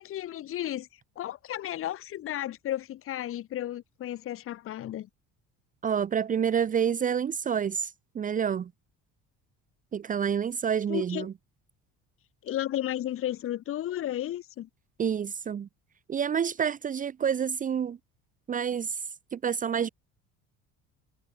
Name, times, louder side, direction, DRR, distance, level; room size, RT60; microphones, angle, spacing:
voice 1, 0.0-5.1 10.9-11.3 12.4-14.7, left 12 dB, 45° left, 3.1 m, -33 dB
voice 2, 5.8-8.7 9.9-11.3 15.0-15.7 16.1-18.0 18.5-19.0 19.3-19.9, right 7 dB, 25° right, 1.1 m, -28 dB
cardioid pair, 150°, 30 cm